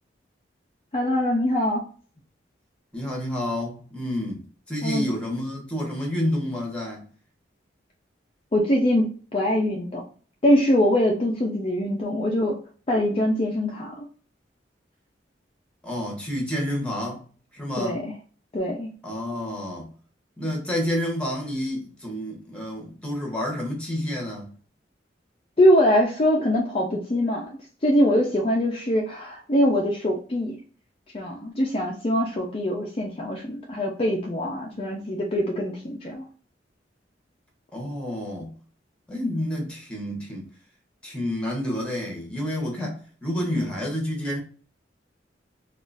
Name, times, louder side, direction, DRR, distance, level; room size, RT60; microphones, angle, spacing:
voice 1, 0.9-1.8 4.8-5.0 8.5-10.0 10.4-12.6 12.9-14.1 17.8-18.1 18.5-18.9 25.6-27.5 27.8-30.6 31.1-36.2, equal, 30° left, 0.5 m, -23 dB
voice 2, 2.9-7.0 15.8-17.2 17.5-18.0 19.0-19.9 20.4-24.5 37.7-38.5 39.1-40.5 41.0-44.4, left 1 dB, 5° left, 1.1 m, -29 dB
3.9 x 2.4 x 2.4 m
head